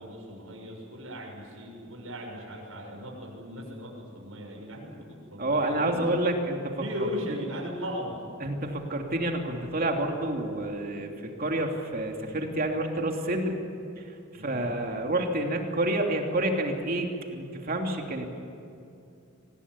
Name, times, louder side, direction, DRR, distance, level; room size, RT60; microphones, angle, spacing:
voice 1, 0.0-3.9 4.1-6.1 6.8-8.2 14.3-14.7, equal, 80° right, -1 dB, 6.9 m, -38 dB
voice 2, 5.4-6.7 8.4-13.6 14.4-18.3, right 1 dB, 45° right, 2 dB, 2.8 m, -28 dB
25.5 x 19.5 x 9.9 m, 2.6 s
head